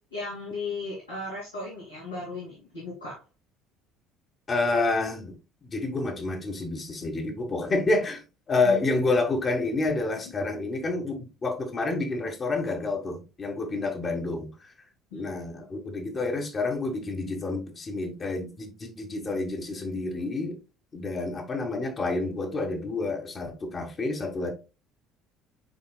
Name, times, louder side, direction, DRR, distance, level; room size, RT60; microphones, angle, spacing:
voice 1, 0.1-3.2 4.7-4.8 8.6-8.8 15.1-15.3, left 2 dB, 85° left, 2.7 m, -36 dB
voice 2, 4.5-5.3 5.6-8.2 8.5-14.7 15.1-20.6 20.9-24.5, left 3 dB, 35° left, 1.5 m, -29 dB
9.6 x 4.3 x 2.3 m
figure-of-eight pair, 55°, 0 cm